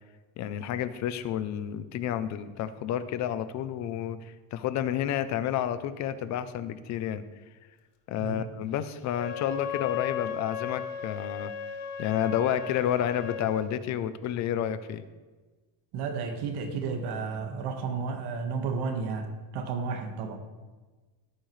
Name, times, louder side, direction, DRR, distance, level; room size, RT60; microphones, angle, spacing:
voice 1, 0.4-7.2 8.1-11.5 12.0-15.0, left 10 dB, 40° left, 13 dB, 0.4 m, -30 dB
Wind instrument woodwind instrument, 9.1-13.6, left 8 dB, 55° left, 0.8 m, -36 dB
voice 2, 15.9-20.4, right 5 dB, 50° right, 5 dB, 1.5 m, -32 dB
16.5 x 8.6 x 3.2 m, 1.3 s
cardioid pair, 180°, 49 cm